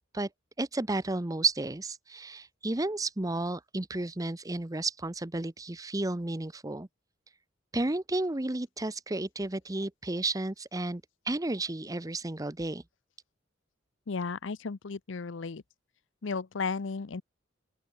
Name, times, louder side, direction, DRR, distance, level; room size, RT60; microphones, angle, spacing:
voice 1, 0.6-6.9 7.7-12.8, right 2 dB, 20° right, 0.8 m, -32 dB
voice 2, 14.1-15.6 16.2-17.2, left 4 dB, 75° left, 0.6 m, -34 dB
open air
head